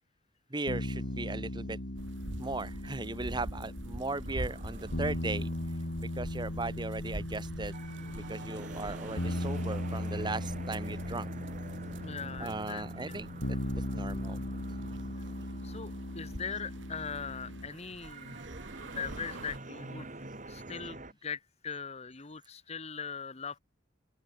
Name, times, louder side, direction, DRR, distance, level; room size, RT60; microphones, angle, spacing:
voice 1, 0.5-1.8 2.4-5.5 6.0-7.7 8.3-11.3 12.4-14.4, right 2 dB, 20° right, 1.2 m, -37 dB
sound 1, 0.7-17.7, left 1 dB, 65° left, 2.6 m, -38 dB
sound 2, 2.0-19.6, right 1 dB, 70° right, 2.2 m, -46 dB
sound 3, 4.2-21.1, right 2 dB, 40° right, 3.1 m, -48 dB
voice 2, 12.0-13.2 15.6-18.4 18.8-20.1 20.4-23.6, left 6 dB, 35° left, 1.2 m, -41 dB
open air
head